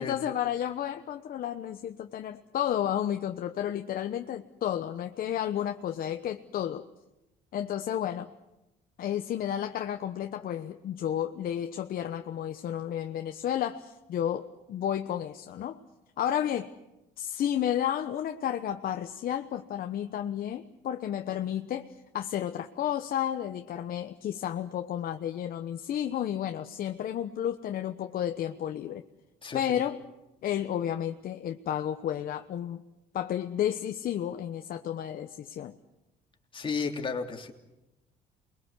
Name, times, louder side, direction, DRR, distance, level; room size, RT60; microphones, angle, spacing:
voice 1, 0.0-6.8 7.5-8.3 9.0-15.8 16.2-16.7 17.2-29.0 29.5-30.0 30.4-32.8 33.1-35.7, left 10 dB, 60° left, 6 dB, 1.1 m, -32 dB
voice 2, 29.4-29.8 36.5-37.5, left 5 dB, 30° left, 3 dB, 3.1 m, -33 dB
28.5 x 22.0 x 8.3 m, 0.97 s
cardioid pair, 110°, 17 cm